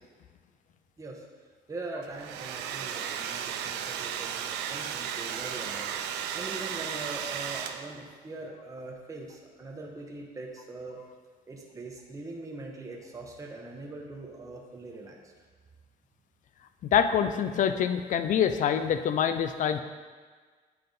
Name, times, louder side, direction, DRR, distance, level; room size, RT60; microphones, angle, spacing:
voice 1, 1.7-5.9 6.3-11.0 11.5-15.2, right 2 dB, 20° right, -1 dB, 0.9 m, -42 dB
Domestic sounds home sounds, 2.0-8.1, right 8 dB, 85° right, 0.5 m, -35 dB
voice 2, 16.8-19.8, left 8 dB, 50° left, 9 dB, 0.5 m, -25 dB
8.9 x 3.7 x 3.9 m, 1.5 s
cardioid pair, 110°, 17 cm